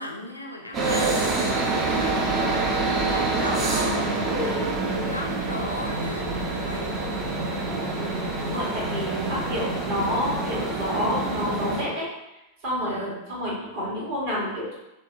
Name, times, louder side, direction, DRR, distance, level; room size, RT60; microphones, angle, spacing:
voice 1, 0.0-4.1 4.6-8.2 12.7-13.3, left 1 dB, 85° left, 0 dB, 0.4 m, -37 dB
sound 1, 0.7-11.8, right 3 dB, 30° right, 0.5 m, -26 dB
voice 2, 3.2-3.6 4.3-4.6 7.5-7.6 8.4-12.1 12.6-14.7, left 1 dB, 50° right, -7 dB, 1.3 m, -29 dB
3.3 x 2.1 x 2.6 m, 0.94 s
figure-of-eight pair, 90°, 0 cm